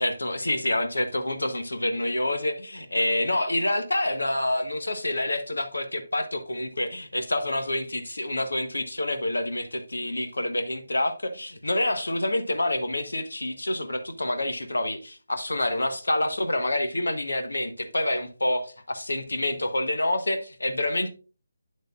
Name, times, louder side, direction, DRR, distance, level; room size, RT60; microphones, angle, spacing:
voice 1, 0.0-21.1, left 1 dB, 80° left, 1.2 m, -27 dB
8.6 x 7.9 x 2.4 m
figure-of-eight pair, 150°, 0 cm